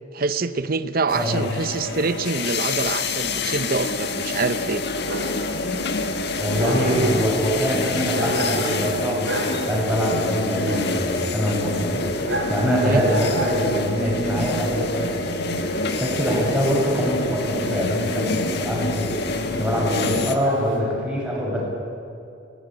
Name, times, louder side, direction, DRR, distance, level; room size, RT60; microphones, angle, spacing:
voice 1, 0.1-4.8 12.8-13.0 20.0-20.3, right 3 dB, 50° right, 13 dB, 0.8 m, -25 dB
sound 1, 1.1-20.3, left 3 dB, 55° left, 1.6 m, -27 dB
voice 2, 1.1-1.5 6.4-15.3 15.6-21.6, equal, 5° right, -4 dB, 7.2 m, -24 dB
Dog, 4.8-20.8, right 1 dB, 75° right, 4.9 m, -33 dB
22.0 x 18.0 x 9.1 m, 2.6 s
head